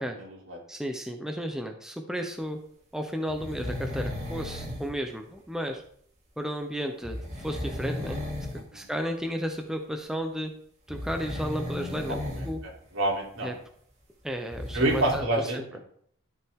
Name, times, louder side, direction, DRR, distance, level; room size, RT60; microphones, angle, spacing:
voice 1, 0.0-0.6 8.7-8.9 12.2-12.5 12.9-13.5 14.7-15.6, right 1 dB, 65° right, -2 dB, 3.3 m, -28 dB
voice 2, 0.7-2.6 2.9-5.8 6.4-8.2 8.7-10.5 10.9-12.2 12.4-12.6 13.4-13.5 14.2-15.2 15.5-15.6, equal, 5° right, 4 dB, 0.7 m, -33 dB
sound 1, 3.3-4.9 7.0-8.6 9.0-9.1 10.9-12.6 12.8-12.9 14.3-15.2, left 1 dB, 30° right, 2.5 m, -35 dB
13.0 x 6.0 x 3.6 m, 0.64 s
head